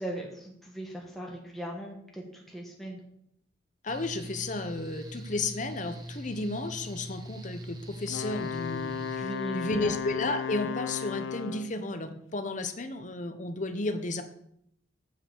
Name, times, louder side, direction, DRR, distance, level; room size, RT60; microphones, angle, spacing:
voice 1, 0.0-3.0 9.2-9.9, right 1 dB, ahead, -2 dB, 1.3 m, -38 dB
voice 2, 3.8-14.2, left 2 dB, 40° left, 8 dB, 0.9 m, -33 dB
Mechanical fan, 3.9-9.2, right 1 dB, 20° right, 1.0 m, -42 dB
Wind instrument woodwind instrument, 8.1-11.8, left 6 dB, 80° left, 0.3 m, -35 dB
7.6 x 5.4 x 6.9 m, 0.72 s
head